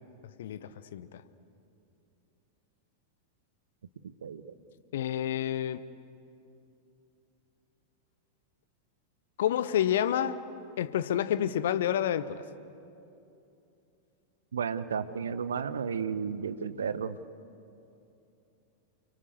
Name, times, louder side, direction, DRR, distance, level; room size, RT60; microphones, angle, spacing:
voice 1, 0.4-1.1 4.9-5.8 9.4-10.4 10.8-12.4, left 10 dB, 60° left, 14 dB, 1.0 m, -29 dB
voice 2, 4.2-4.5 14.5-17.2, right 6 dB, 70° right, 14 dB, 0.9 m, -33 dB
29.0 x 23.5 x 8.1 m, 2.7 s
figure-of-eight pair, 90°, 0 cm